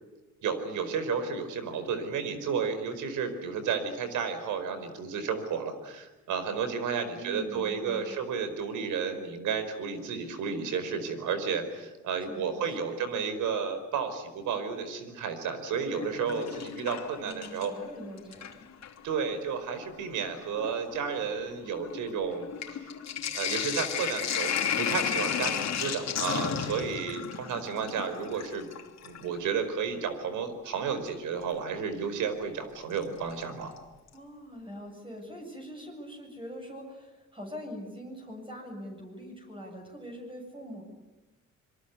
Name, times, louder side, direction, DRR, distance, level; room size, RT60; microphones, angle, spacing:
voice 1, 0.4-17.7 19.0-22.9 23.3-28.7 29.0-33.7, right 6 dB, 85° right, 10 dB, 4.8 m, -32 dB
voice 2, 7.1-8.2 12.3-13.0 17.2-18.7 34.1-40.8, equal, 15° right, 1 dB, 7.6 m, -43 dB
Sink (filling or washing), 15.8-17.8 18.2-19.0 19.8-19.9 20.2-29.3 31.1-31.2 33.0-33.4 33.8-33.9 34.1-34.2, left 8 dB, 60° left, 3.1 m, -33 dB
26.0 x 23.0 x 8.4 m, 1.1 s
cardioid pair, 90°, 30 cm